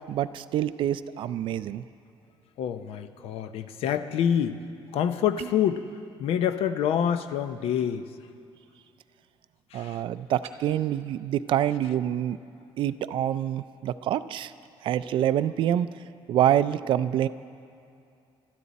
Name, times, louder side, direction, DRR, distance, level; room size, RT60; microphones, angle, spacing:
voice 1, 0.1-1.8 9.7-12.4 12.8-14.5 14.8-15.9 16.3-17.3, right 11 dB, 55° right, 14 dB, 0.4 m, -26 dB
voice 2, 2.6-4.6 4.9-5.8 6.2-8.1 9.7-9.9, left 9 dB, 75° left, 10 dB, 0.7 m, -26 dB
sound 1, 5.4-5.8 10.3-10.6, right 7 dB, 85° right, 1.0 m, -41 dB
24.5 x 13.0 x 4.2 m, 2.4 s
cardioid pair, 175°, 10 cm